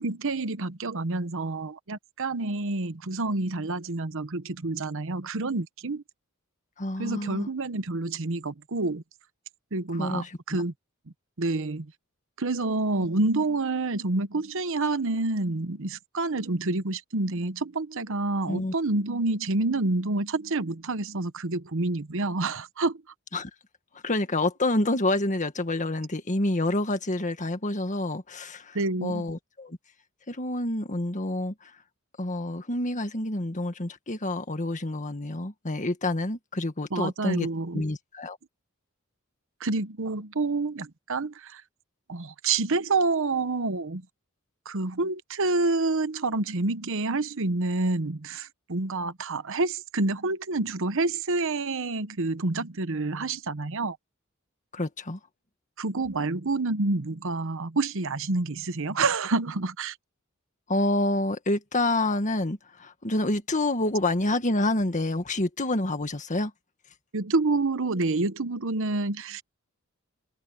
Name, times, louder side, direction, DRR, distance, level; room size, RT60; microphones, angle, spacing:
voice 1, 0.0-6.0 7.0-9.0 9.7-10.7 11.4-11.9 12.4-23.0 28.7-29.2 36.9-37.8 39.6-41.6 42.1-44.1 44.6-54.0 55.8-60.0 67.1-69.4, right 3 dB, 65° right, 1.0 m, -28 dB
voice 2, 6.8-7.5 9.9-10.6 18.5-18.7 23.3-23.5 24.0-29.8 30.3-31.7 32.2-37.5 37.7-38.4 54.7-55.2 60.7-66.5, left 2 dB, 35° left, 1.8 m, -28 dB
head